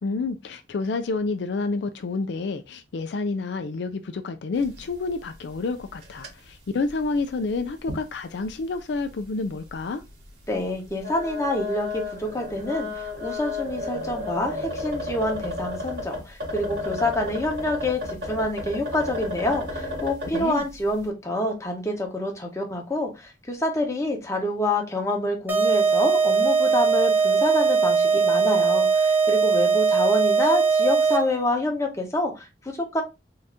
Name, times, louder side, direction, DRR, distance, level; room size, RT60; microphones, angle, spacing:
voice 1, 0.0-10.0 20.3-20.6, left 3 dB, 70° left, 0.4 m, -29 dB
sound 1, 4.6-5.1 5.4-5.5 5.9-6.3 6.9-7.0 7.9-8.0 8.4-8.5 9.7-9.8 10.9-20.5, left 2 dB, 65° right, 2.2 m, -32 dB
voice 2, 10.5-33.0, left 1 dB, 15° left, 1.0 m, -27 dB
sound 2, 25.5-31.4, right 5 dB, 10° right, 0.9 m, -20 dB
3.7 x 2.8 x 3.4 m
head